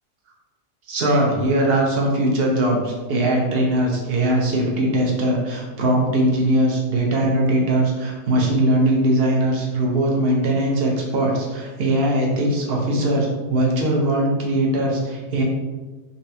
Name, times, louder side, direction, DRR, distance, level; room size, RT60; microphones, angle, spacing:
voice 1, 0.9-15.4, right 1 dB, 50° right, -1 dB, 0.8 m, -20 dB
4.1 x 3.3 x 2.7 m, 1.2 s
omnidirectional pair, 1.7 m